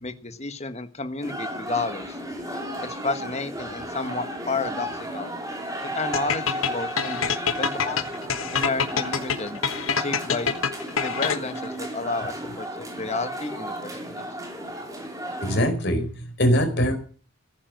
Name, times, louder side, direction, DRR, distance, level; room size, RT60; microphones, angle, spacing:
voice 1, 0.0-2.2 2.8-5.3 5.9-7.3 7.6-8.0 8.5-9.6 10.0-10.6 10.9-14.3, left 3 dB, 30° left, 9 dB, 1.4 m, -31 dB
sound 1, 1.2-15.7, right 1 dB, 15° right, 3.6 m, -34 dB
sound 2, 6.1-11.7, left 6 dB, 80° left, 1.5 m, -26 dB
voice 2, 15.4-16.9, equal, 55° left, 6 dB, 4.6 m, -22 dB
15.5 x 10.0 x 7.8 m, 0.41 s
head